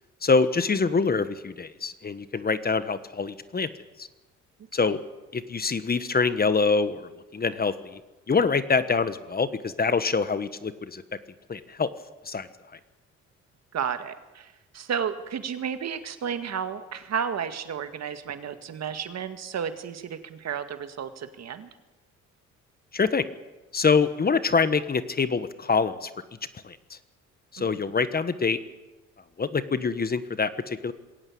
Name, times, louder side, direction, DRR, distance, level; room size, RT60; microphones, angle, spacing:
voice 1, 0.2-3.7 4.0-4.1 4.7-5.0 5.3-8.0 8.3-11.0 11.5-11.9 12.2-12.5 22.9-23.2 23.7-26.1 26.6-27.0 27.5-28.6 29.4-30.9, left 4 dB, 30° left, 13 dB, 1.4 m, -25 dB
voice 2, 13.7-21.7 27.6-27.8, right 7 dB, 60° right, 9 dB, 2.0 m, -32 dB
21.5 x 17.5 x 8.6 m, 1.1 s
cardioid pair, 90°, 30 cm